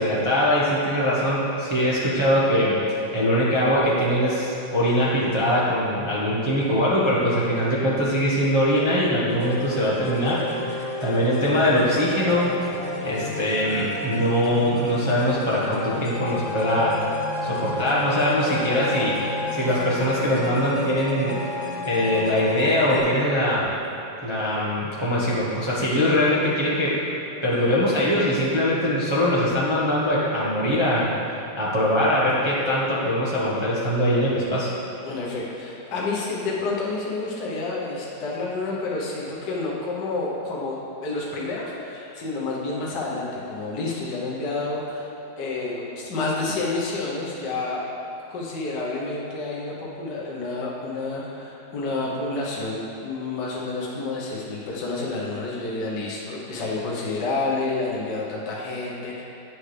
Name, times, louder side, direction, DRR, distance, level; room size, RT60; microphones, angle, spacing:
voice 1, 0.0-12.5 13.0-17.0 17.4-19.2 19.5-21.4 21.8-23.7 24.2-27.0 27.4-31.1 31.6-34.7, equal, 25° right, -8 dB, 0.6 m, -22 dB
sound 1, 9.3-23.0, left 3 dB, 35° left, 1.7 m, -32 dB
voice 2, 35.0-45.1 45.4-47.8 48.3-59.2, left 3 dB, 60° left, -5 dB, 1.6 m, -29 dB
8.6 x 6.3 x 3.3 m, 2.9 s
omnidirectional pair, 2.3 m